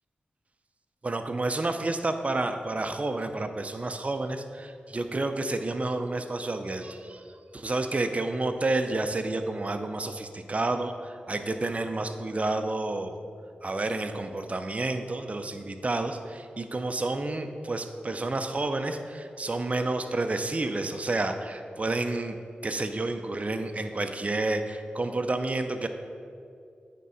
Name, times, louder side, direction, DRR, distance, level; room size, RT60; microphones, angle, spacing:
voice 1, 1.0-7.2 7.5-13.2 13.6-22.4 22.6-25.9, right 2 dB, 40° right, 7 dB, 0.6 m, -30 dB
9.3 x 3.7 x 5.5 m, 2.5 s
cardioid pair, 50°, 3 cm